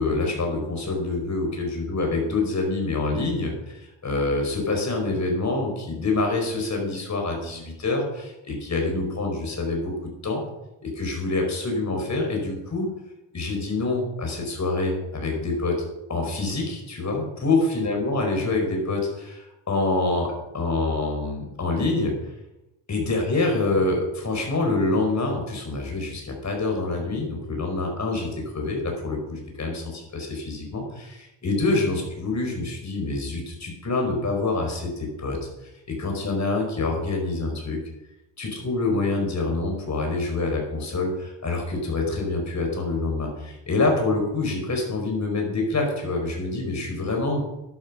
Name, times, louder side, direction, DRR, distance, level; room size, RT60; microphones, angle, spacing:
voice 1, 0.0-9.9 10.2-10.4 10.8-12.9 13.3-15.8 16.1-22.1 22.9-35.5 35.9-37.8 38.4-47.4, left 3 dB, 35° left, 2 dB, 5.0 m, -26 dB
12.0 x 11.5 x 5.7 m, 0.94 s
cardioid pair, 115°, 48 cm